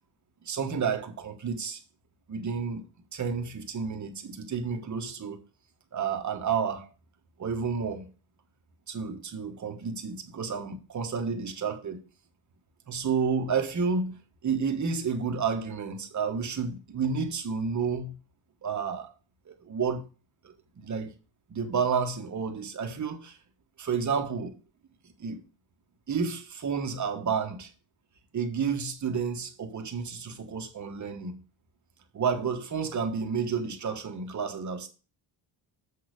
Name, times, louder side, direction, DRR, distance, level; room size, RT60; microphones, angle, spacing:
voice 1, 0.4-1.8 2.3-2.8 3.1-5.4 5.9-6.9 7.4-8.1 8.9-12.0 12.9-18.2 18.6-19.1 19.5-20.0 20.4-21.1 21.5-23.4 23.8-24.6 25.2-25.4 26.1-27.7 28.3-31.4 32.1-34.9, right 6 dB, 35° right, 1.4 m, -30 dB
7.6 x 6.4 x 5.1 m
cardioid pair, 170°, 49 cm